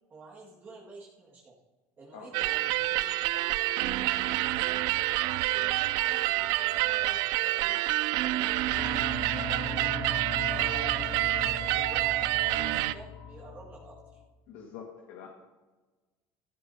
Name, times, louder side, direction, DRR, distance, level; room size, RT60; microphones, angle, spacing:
voice 1, 0.1-1.6 2.0-9.9 10.6-14.2, right 4 dB, 30° right, -5 dB, 1.9 m, -49 dB
sound 1, 2.3-12.9, right 17 dB, 70° right, 0.4 m, -28 dB
sound 2, 8.7-14.2, left 6 dB, 65° left, 2.8 m, -39 dB
voice 2, 14.5-15.3, left 6 dB, 80° left, 1 dB, 1.8 m, -45 dB
15.0 x 15.0 x 2.8 m, 1.2 s
cardioid pair, 140°, 6 cm